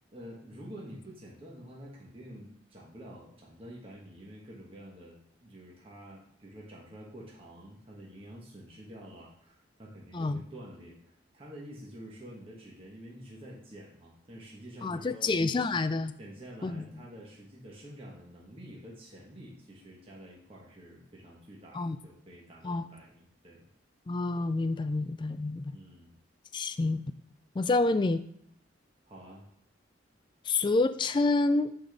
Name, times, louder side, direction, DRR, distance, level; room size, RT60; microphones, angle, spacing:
voice 1, 0.1-15.3 16.2-23.7 25.7-26.2 29.1-29.5, equal, 30° right, -3 dB, 1.2 m, -48 dB
voice 2, 14.8-16.1 16.6-16.8 21.7-22.0 22.6-22.8 24.1-25.7 26.5-27.0 27.6-28.2 30.5-31.7, left 3 dB, 25° left, 12 dB, 0.3 m, -28 dB
9.4 x 4.1 x 3.4 m, 0.70 s
head